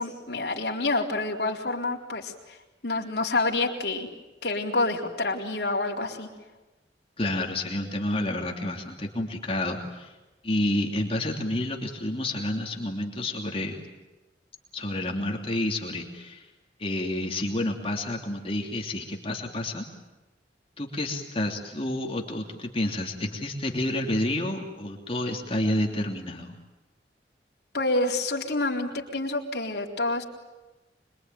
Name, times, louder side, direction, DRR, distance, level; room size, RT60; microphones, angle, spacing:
voice 1, 0.0-2.6 2.8-4.1 4.4-6.3 27.7-30.2, left 2 dB, 65° left, 0 dB, 4.1 m, -28 dB
voice 2, 7.2-10.1 10.4-13.8 14.7-16.5 16.8-19.9 20.8-26.6, left 1 dB, 30° left, 1 dB, 3.0 m, -29 dB
26.0 x 23.0 x 9.3 m, 1.1 s
head